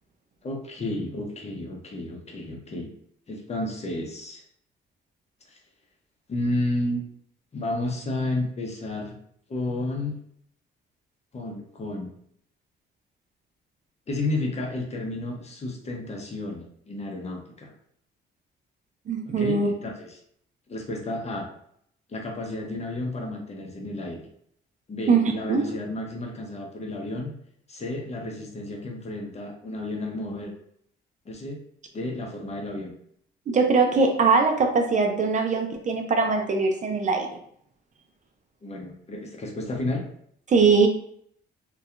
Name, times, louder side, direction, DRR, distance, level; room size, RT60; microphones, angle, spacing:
voice 1, 0.4-2.9 3.3-4.4 5.5-5.6 6.3-7.0 7.5-9.1 9.5-10.1 11.3-12.1 14.1-17.7 19.2-20.2 20.7-21.5 22.1-24.3 24.9-27.3 27.7-30.5 31.3-31.6 31.9-32.9 38.6-40.0, left 2 dB, 35° left, 1 dB, 0.7 m, -32 dB
voice 2, 19.1-19.7 25.1-25.6 33.5-37.3 40.5-40.9, right 4 dB, 40° right, 3 dB, 0.4 m, -21 dB
2.6 x 2.2 x 2.4 m, 0.68 s
cardioid pair, 90°, 20 cm